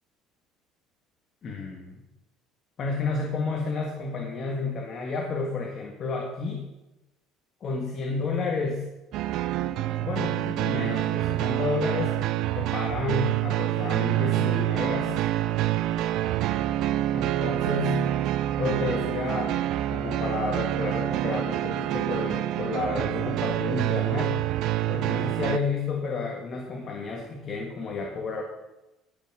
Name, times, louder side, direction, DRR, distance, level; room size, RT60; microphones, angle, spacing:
voice 1, 1.4-2.0 2.8-6.7 7.6-8.9 10.0-12.2 12.5-15.2 17.1-18.0 18.6-19.6 19.9-24.4 24.9-28.4, left 4 dB, 40° left, 1 dB, 1.8 m, -31 dB
sound 1, 9.1-25.6, right 13 dB, 65° right, 0.6 m, -27 dB
15.5 x 6.1 x 6.3 m, 0.98 s
cardioid pair, 115°, 0 cm